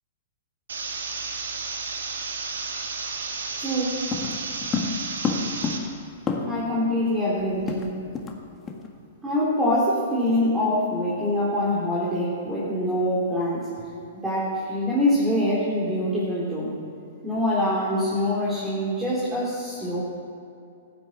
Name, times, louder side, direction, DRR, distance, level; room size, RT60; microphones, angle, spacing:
sound 1, 0.7-5.8, right 4 dB, 80° right, 2.1 m, -32 dB
voice 1, 3.6-4.0 6.4-7.9 9.2-13.7 14.2-16.7 17.2-20.0, left 1 dB, 10° right, -8 dB, 3.6 m, -24 dB
sound 2, 4.1-6.8 7.0-7.1 7.4-8.4 8.7-8.9 9.3-9.5, left 5 dB, 20° left, 1.6 m, -29 dB
14.5 x 9.7 x 7.4 m, 2.5 s
hypercardioid pair, 120°, 0 cm